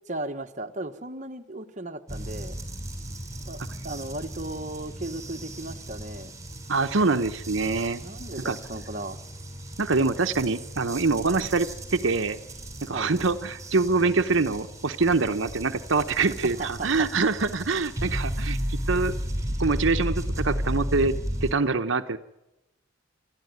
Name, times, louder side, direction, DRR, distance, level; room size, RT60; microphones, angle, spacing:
voice 1, 0.1-2.6 3.4-6.3 7.2-7.3 8.0-9.2 12.9-13.1 16.4-17.1, right 2 dB, 35° right, 6 dB, 1.2 m, -36 dB
sound 1, 2.1-21.5, equal, 15° right, 3.5 m, -34 dB
voice 2, 6.7-8.0 8.4-8.6 9.8-12.4 12.8-18.6 18.9-19.1 19.6-21.1 21.4-22.2, right 3 dB, 75° right, 9 dB, 0.9 m, -24 dB
28.0 x 12.5 x 9.5 m, 0.93 s
head